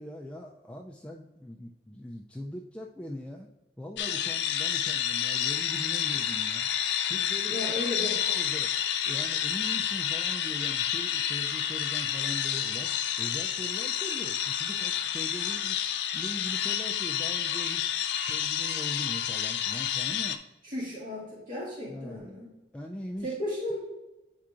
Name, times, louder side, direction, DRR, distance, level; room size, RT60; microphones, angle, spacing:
voice 1, 0.0-3.5 3.8-6.7 7.1-7.8 8.3-8.7 9.0-12.9 13.2-17.9 18.2-20.4 21.9-22.3 22.7-23.3, left 1 dB, 5° left, 0 dB, 0.3 m, -41 dB
sound 1, 4.0-20.4, left 9 dB, 75° left, 0.4 m, -29 dB
voice 2, 7.5-8.1 20.6-22.5 23.2-23.8, left 1 dB, 50° right, -8 dB, 2.2 m, -34 dB
8.6 x 4.6 x 2.5 m, 1.0 s
head